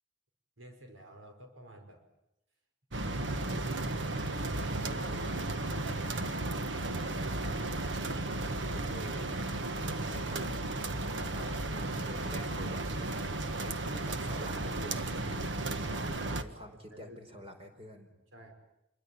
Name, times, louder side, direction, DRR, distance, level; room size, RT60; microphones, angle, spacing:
voice 1, 0.6-2.0 3.3-3.9 4.9-6.1 15.9-17.2 18.3-18.5, right 1 dB, 90° right, 4 dB, 5.1 m, -51 dB
sound 1, 2.9-16.4, right 2 dB, 65° right, 1.6 m, -34 dB
voice 2, 8.7-9.4 10.1-10.7 11.3-11.6 12.0-15.6 16.2-18.2, equal, 30° right, 5 dB, 4.8 m, -48 dB
27.0 x 23.5 x 8.6 m, 0.87 s
head